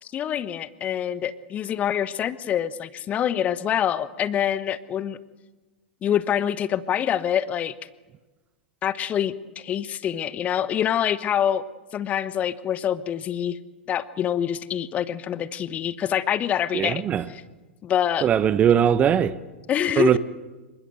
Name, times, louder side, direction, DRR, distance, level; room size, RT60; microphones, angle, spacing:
voice 1, 0.0-5.2 6.0-7.7 8.8-11.6 11.9-13.6 13.9-17.4 17.8-18.3 19.7-20.2, left 10 dB, 25° left, 1.1 m, -26 dB
voice 2, 16.7-17.3 18.2-19.4 20.0-20.2, right 9 dB, 25° right, 1.0 m, -20 dB
26.5 x 23.5 x 7.9 m
figure-of-eight pair, 100°, 6 cm